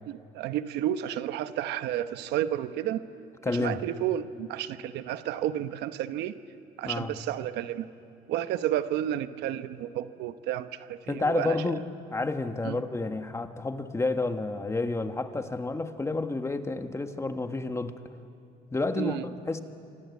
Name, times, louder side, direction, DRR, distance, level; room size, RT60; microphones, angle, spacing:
voice 1, 0.1-3.0 3.5-6.4 6.8-7.9 8.3-11.7 12.6-12.8 19.0-19.2, right 12 dB, 85° right, 11 dB, 1.0 m, -31 dB
voice 2, 3.4-3.8 6.8-7.1 11.1-11.8 12.1-17.9 18.7-19.6, left 3 dB, 15° left, 7 dB, 1.5 m, -30 dB
28.0 x 25.0 x 8.4 m, 2.7 s
cardioid pair, 110°, 17 cm